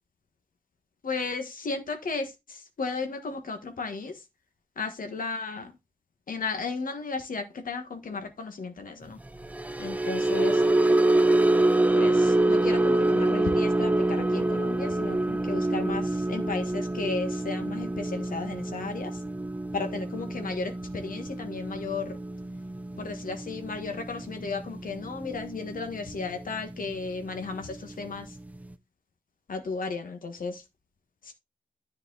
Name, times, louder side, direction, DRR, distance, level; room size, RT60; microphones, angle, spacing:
voice 1, 1.0-2.2 2.8-4.1 4.8-5.6 6.3-9.2 9.8-10.5 11.9-19.1 19.7-22.1 23.0-27.7 28.0-28.2 29.5-30.5, left 4 dB, 80° left, 1.5 m, -34 dB
sound 1, 9.4-25.8 26.1-26.4 26.8-27.0, right 2 dB, 10° right, 0.6 m, -26 dB
10.5 x 4.7 x 4.0 m
wide cardioid pair, 140°, 14 cm